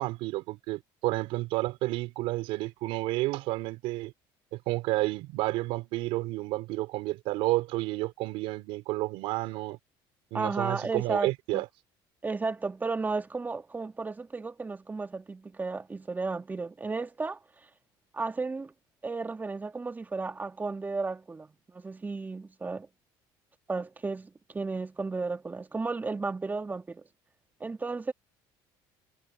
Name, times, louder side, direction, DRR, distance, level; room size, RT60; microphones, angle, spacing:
voice 1, 0.0-4.1 4.5-9.8 10.3-11.7, right 19 dB, 75° right, 4.6 m, -31 dB
voice 2, 10.3-11.6 12.2-17.7 18.1-18.7 19.0-22.9 23.7-27.0 27.6-28.1, right 3 dB, 20° right, 2.3 m, -34 dB
supercardioid pair, 105°, 10 cm